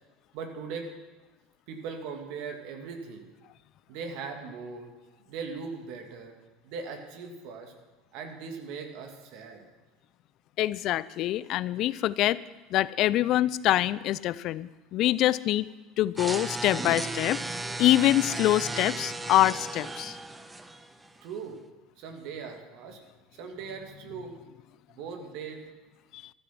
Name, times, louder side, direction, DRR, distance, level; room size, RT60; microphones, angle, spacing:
voice 1, 0.3-0.9 1.7-3.3 3.9-6.3 6.6-7.7 8.1-9.6 21.2-21.6 22.0-23.0 23.4-24.4 24.9-25.6, right 5 dB, 65° right, 4 dB, 2.6 m, -39 dB
voice 2, 10.6-12.4 12.7-15.7 16.0-17.4 17.8-20.2 26.1-26.2, left 14 dB, 55° left, 19 dB, 0.5 m, -25 dB
sound 1, 16.2-21.2, right 2 dB, 10° right, 1.0 m, -35 dB
14.5 x 12.5 x 6.1 m, 1.2 s
hypercardioid pair, 75°, 0 cm